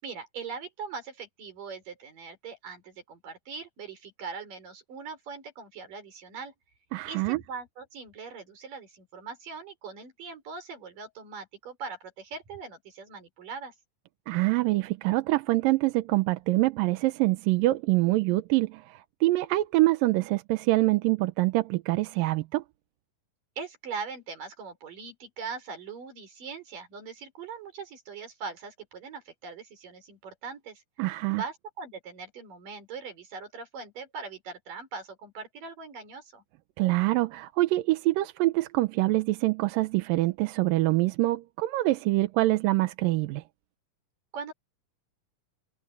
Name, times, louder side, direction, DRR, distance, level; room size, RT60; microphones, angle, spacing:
voice 1, 0.0-6.5 7.0-13.7 23.6-30.8 31.3-36.4 44.3-44.5, right 5 dB, 70° right, 6.5 m, -41 dB
voice 2, 6.9-7.4 14.3-22.6 31.0-31.4 36.8-43.4, right 19 dB, 85° right, 2.5 m, -25 dB
omnidirectional pair, 4.0 m